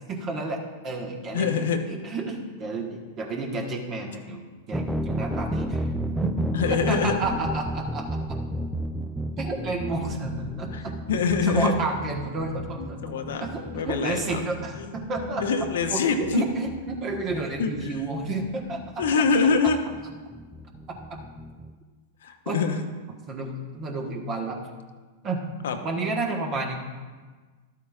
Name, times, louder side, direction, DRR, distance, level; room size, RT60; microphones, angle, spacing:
voice 1, 0.1-4.4 4.7-5.9 6.2-6.3 6.7-8.1 9.4-10.9 11.4-13.1 13.4-15.5 15.9-18.8 22.4-22.6 23.3-24.6 25.2-25.4 25.8-26.7, right 2 dB, 35° right, 1 dB, 1.3 m, -31 dB
voice 2, 1.3-1.8 6.5-7.2 10.7-10.8 11.1-11.7 12.8-13.5 13.7-14.4 14.8-14.9 15.3-16.5 17.6-18.0 19.0-19.8 22.2-22.9 25.6-25.8, left 5 dB, 65° left, 6 dB, 0.8 m, -24 dB
sound 1, 4.7-21.7, right 1 dB, 5° right, 0.4 m, -33 dB
12.5 x 8.2 x 2.4 m, 1.4 s
figure-of-eight pair, 100°, 0 cm